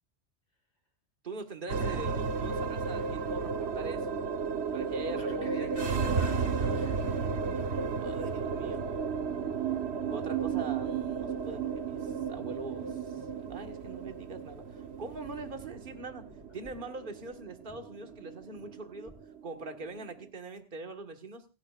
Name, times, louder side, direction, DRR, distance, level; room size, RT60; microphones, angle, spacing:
voice 1, 1.2-4.1 4.7-5.7 8.0-9.0 10.1-16.3 16.5-19.2 19.4-21.5, right 3 dB, 45° right, 5 dB, 1.8 m, -43 dB
sound 1, 1.7-20.2, right 5 dB, 65° right, 1.3 m, -33 dB
voice 2, 1.8-2.2 5.1-7.2, left 1 dB, 50° left, 0 dB, 6.4 m, -44 dB
sound 2, 10.4-10.6 10.9-11.8 12.1-13.3 13.6-13.8 14.2-14.3 14.6-14.7 15.1-17.4 17.7-19.3, equal, 10° right, 6.2 m, -57 dB
28.5 x 10.0 x 2.5 m, 0.29 s
omnidirectional pair, 1.2 m